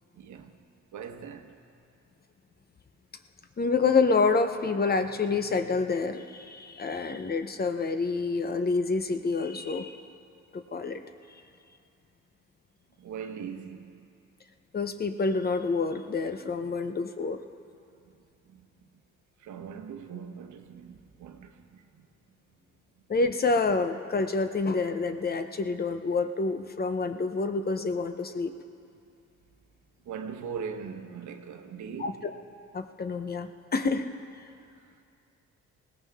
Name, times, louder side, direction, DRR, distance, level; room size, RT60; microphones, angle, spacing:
voice 1, 0.1-0.6 0.9-1.6 13.0-13.9 16.9-17.1 18.4-18.9 19.4-22.1 30.0-32.2, right 6 dB, 75° right, 1.2 m, -41 dB
voice 2, 3.6-10.0 10.5-11.0 14.7-17.4 23.1-28.5 32.0-32.3 32.7-34.1, left 4 dB, 30° left, 0.8 m, -28 dB
20.0 x 17.0 x 3.6 m
cardioid pair, 90°, 30 cm